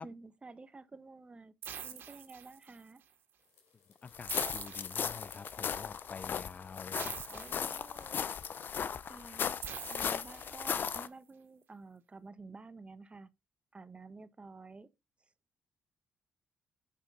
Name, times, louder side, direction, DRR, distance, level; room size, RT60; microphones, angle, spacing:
voice 1, 0.0-1.5 1.8-3.0 7.3-8.3 9.0-9.4 9.9-13.3 13.7-14.9, right 3 dB, 30° right, 1.3 m, -51 dB
sound 1, 1.6-3.0 4.3-5.6 6.9-8.3 9.6-11.0, right 8 dB, 70° right, 2.5 m, -46 dB
sound 2, 3.4-9.9, left 6 dB, 80° left, 4.2 m, -67 dB
voice 2, 4.0-7.5, left 5 dB, 40° left, 0.5 m, -48 dB
sound 3, 4.1-11.1, left 7 dB, 55° left, 0.8 m, -37 dB
8.7 x 6.3 x 3.9 m
supercardioid pair, 65°, 4 cm